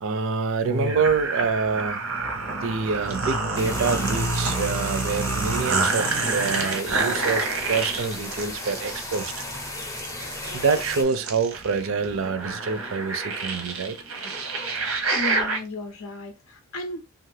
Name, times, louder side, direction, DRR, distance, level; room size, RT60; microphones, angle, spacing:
voice 1, 0.0-2.0 2.5-9.3 10.5-14.0, right 5 dB, 70° right, 0.5 m, -26 dB
sound 1, 0.6-15.6, right 3 dB, 90° right, 0.8 m, -28 dB
sound 2, 3.6-11.0, left 2 dB, 15° left, 0.5 m, -36 dB
voice 2, 14.8-17.0, left 2 dB, 80° left, 0.5 m, -34 dB
2.6 x 2.5 x 3.2 m
head